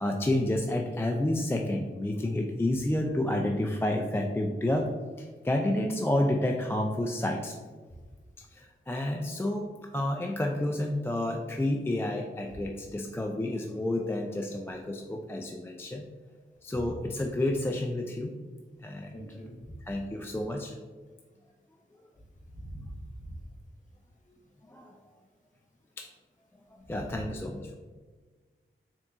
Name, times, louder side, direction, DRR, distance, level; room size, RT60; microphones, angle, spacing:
voice 1, 0.0-4.9 5.2-7.5 8.5-16.1 16.6-18.4 18.8-19.1 19.9-20.7 24.7-24.9 26.0-26.1 26.9-27.7, left 1 dB, 10° left, 1 dB, 0.3 m, -30 dB
voice 2, 19.1-19.8 22.5-23.4 26.9-27.2, right 1 dB, 35° left, -1 dB, 1.2 m, -42 dB
3.8 x 3.5 x 2.5 m, 1.4 s
cardioid pair, 45°, 21 cm